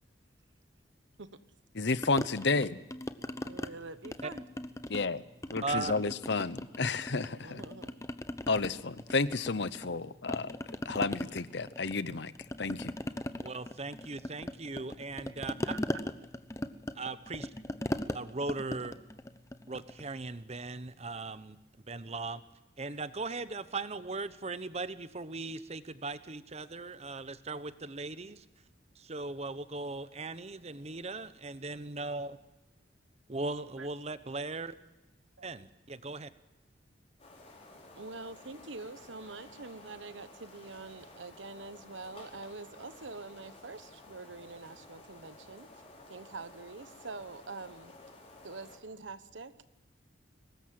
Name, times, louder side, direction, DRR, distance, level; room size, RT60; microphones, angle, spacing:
voice 1, 1.8-2.8 4.9-5.2 5.5-7.6 8.5-12.9, left 3 dB, 65° left, 16 dB, 0.9 m, -32 dB
sound 1, 2.0-3.7 4.0-5.1 5.4-7.3 7.6-10.0 10.3-20.1, left 1 dB, 15° left, 0.9 m, -39 dB
voice 2, 3.4-4.5 7.4-8.1 15.3-15.4 15.6-15.8 33.5-33.9 35.4-35.5 37.9-45.8 46.1-47.9 48.4-49.6, right 3 dB, 85° right, 13 dB, 1.3 m, -45 dB
voice 3, 5.6-5.9 13.4-15.5 16.9-17.5 18.1-19.0 19.7-21.6 21.9-22.4 22.8-28.4 29.0-32.4 33.3-34.7 35.4-36.3, right 3 dB, 35° right, 14 dB, 1.0 m, -38 dB
sound 2, 37.2-48.8, left 2 dB, 35° left, 5.2 m, -54 dB
23.0 x 19.5 x 7.7 m, 1.0 s
head